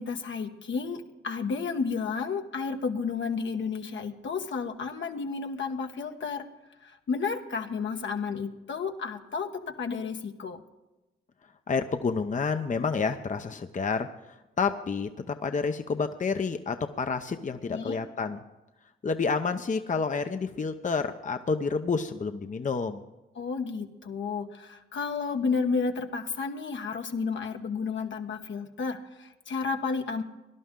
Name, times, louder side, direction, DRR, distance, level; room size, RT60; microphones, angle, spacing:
voice 1, 0.0-6.5 6.8-10.6 17.7-18.0 23.4-30.2, left 5 dB, 65° left, 5 dB, 1.2 m, -32 dB
voice 2, 11.7-18.4 19.0-23.0, left 4 dB, 40° left, 7 dB, 0.8 m, -29 dB
18.5 x 11.0 x 3.8 m, 1.0 s
cardioid pair, 60°, 21 cm